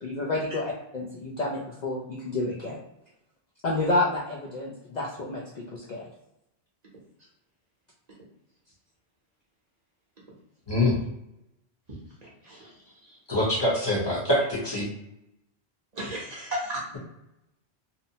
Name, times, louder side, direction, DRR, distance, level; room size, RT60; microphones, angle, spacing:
voice 1, 0.0-2.8 3.6-6.1, left 2 dB, 55° left, -4 dB, 0.5 m, -29 dB
voice 2, 10.7-11.0 13.3-14.9, left 1 dB, 25° left, -6 dB, 0.8 m, -24 dB
voice 3, 12.4-13.2 15.9-17.0, equal, 45° right, -4 dB, 0.7 m, -35 dB
2.8 x 2.0 x 2.7 m, 0.86 s
omnidirectional pair, 1.1 m